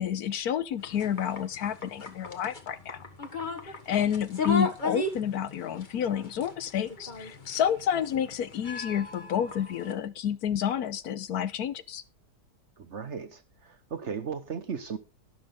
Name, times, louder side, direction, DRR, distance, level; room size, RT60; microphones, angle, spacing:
voice 1, 0.0-3.0 3.6-12.0, left 9 dB, 70° left, 1.2 m, -29 dB
sound 1, 0.8-9.9, left 2 dB, 30° left, 1.5 m, -36 dB
voice 2, 12.8-15.0, right 6 dB, 50° right, 1.1 m, -36 dB
12.0 x 11.0 x 3.7 m
omnidirectional pair, 1.8 m